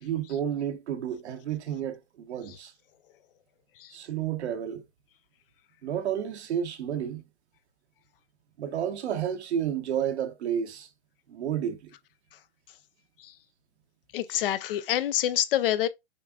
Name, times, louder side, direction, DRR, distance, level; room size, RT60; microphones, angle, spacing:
voice 1, 0.0-2.7 3.9-4.8 5.8-7.2 8.6-10.9 11.3-11.9, right 9 dB, 75° right, 1.1 m, -31 dB
voice 2, 14.1-15.9, left 12 dB, 55° left, 0.5 m, -27 dB
6.5 x 2.4 x 2.3 m
hypercardioid pair, 130°, 34 cm